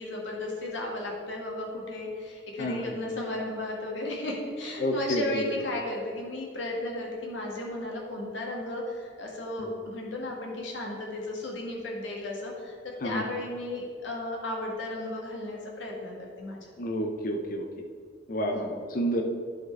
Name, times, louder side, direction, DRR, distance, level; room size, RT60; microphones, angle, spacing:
voice 1, 0.0-12.8 13.0-16.6 18.5-18.8, left 1 dB, 80° left, -1 dB, 1.8 m, -34 dB
voice 2, 4.8-5.4 9.6-9.7 13.0-13.2 16.8-17.7 18.3-19.2, equal, 45° left, 3 dB, 0.6 m, -29 dB
11.0 x 4.5 x 4.7 m, 2.2 s
head